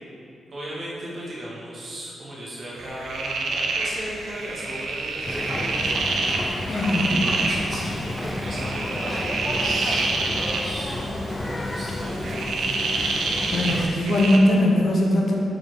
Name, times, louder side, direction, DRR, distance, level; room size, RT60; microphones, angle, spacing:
voice 1, 0.5-6.7 7.1-11.0 11.3-12.6, right 1 dB, 45° right, -7 dB, 1.4 m, -37 dB
sound 1, 2.7-14.4, right 3 dB, 75° right, 0.6 m, -28 dB
Boat Water vehicle, 5.2-13.9, left 1 dB, 25° left, 0.5 m, -31 dB
voice 2, 6.7-7.2 13.5-15.4, left 1 dB, 55° left, -1 dB, 1.0 m, -20 dB
4.8 x 4.3 x 4.7 m, 2.6 s
cardioid pair, 75°, 0 cm